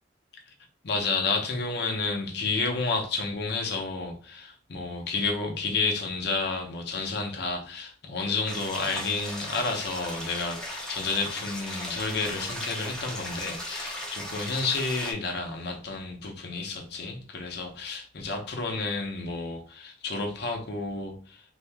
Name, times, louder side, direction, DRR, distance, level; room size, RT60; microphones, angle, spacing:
voice 1, 0.8-21.4, left 3 dB, 65° left, 0.7 m, -31 dB
sound 1, 8.5-15.1, equal, 5° left, 0.8 m, -37 dB
2.7 x 2.5 x 3.4 m
head